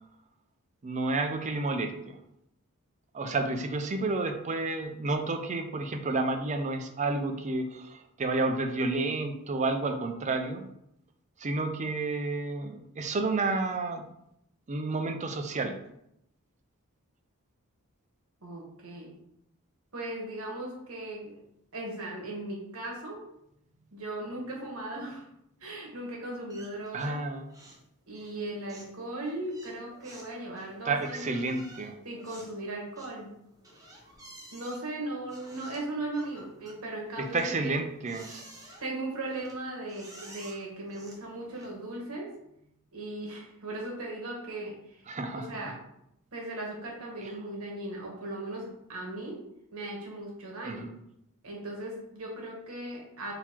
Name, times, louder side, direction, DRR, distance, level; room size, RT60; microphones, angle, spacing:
voice 1, 0.8-2.2 3.1-10.6 11.4-14.1 14.7-15.8 26.9-27.5 30.9-32.0 37.2-38.4 45.1-45.6 50.6-50.9, right 3 dB, 30° right, 6 dB, 0.5 m, -30 dB
voice 2, 18.4-19.1 19.9-21.3 21.7-23.2 23.9-25.3 25.6-27.2 28.1-31.3 32.0-33.3 34.5-37.9 38.8-42.3 42.9-45.0 45.3-45.7 46.3-49.4 49.7-50.9 51.4-53.3, right 2 dB, 70° right, -1 dB, 1.3 m, -38 dB
sound 1, 26.5-27.2 27.5-27.9 28.1-42.0, right 1 dB, 15° right, 0.8 m, -52 dB
3.9 x 2.9 x 4.4 m, 0.78 s
head